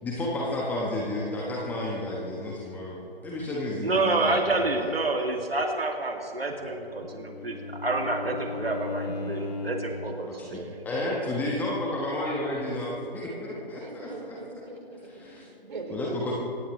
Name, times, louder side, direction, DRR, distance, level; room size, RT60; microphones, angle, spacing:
voice 1, 0.0-4.9 10.2-10.6 10.8-14.4 15.0-15.5 15.9-16.3, left 1 dB, 5° left, -3 dB, 1.1 m, -32 dB
voice 2, 3.8-7.6 7.8-10.7, right 2 dB, 75° right, 2 dB, 2.4 m, -28 dB
Bowed string instrument, 6.5-10.1, left 3 dB, 40° left, 2.3 m, -36 dB
voice 3, 11.0-11.4 13.8-16.3, right 2 dB, 50° right, 1 dB, 3.7 m, -41 dB
24.0 x 17.5 x 3.1 m, 2.9 s
figure-of-eight pair, 145°, 30 cm